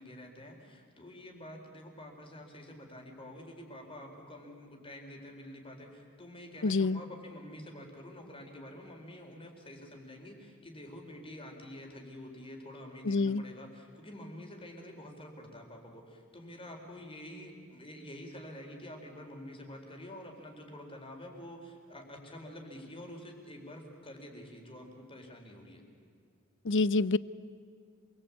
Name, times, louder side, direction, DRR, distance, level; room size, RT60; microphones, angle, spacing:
voice 1, 0.0-25.8, left 1 dB, 25° left, 2 dB, 4.1 m, -48 dB
voice 2, 6.6-7.0 13.0-13.4 26.6-27.2, left 3 dB, 60° left, 18 dB, 0.6 m, -27 dB
27.5 x 22.5 x 8.6 m, 2.2 s
head